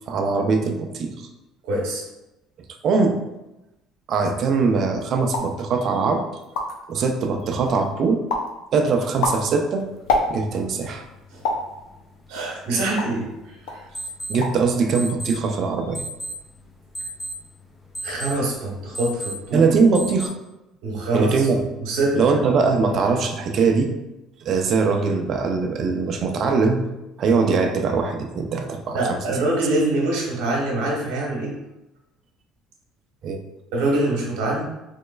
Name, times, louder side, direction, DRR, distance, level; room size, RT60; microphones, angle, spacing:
voice 1, 0.1-1.1 2.8-3.2 4.1-6.2 6.9-8.2 8.7-9.9 10.3-11.0 14.3-16.0 19.5-20.3 21.1-21.7 22.2-23.9 24.4-26.8 27.2-29.4 33.2-33.4, right 4 dB, 55° right, 4 dB, 0.5 m, -21 dB
voice 2, 1.6-2.0 11.3-11.4 12.3-13.3 13.7-13.8 18.0-19.7 20.8-21.5 21.9-22.2 28.9-31.5 33.7-34.6, right 2 dB, 80° right, -2 dB, 1.0 m, -24 dB
sound 1, 5.3-5.6 6.1-6.2 6.4-6.9 7.4-7.9 8.3-8.6 9.0-10.7 11.4-11.7 12.3-13.3 13.7-13.9 14.2-14.7 14.9-15.4, left 2 dB, 85° left, 0.5 m, -27 dB
sound 2, 9.9-20.3, right 1 dB, 25° left, 0.7 m, -38 dB
3.5 x 3.1 x 2.3 m, 0.97 s
supercardioid pair, 85°, 0 cm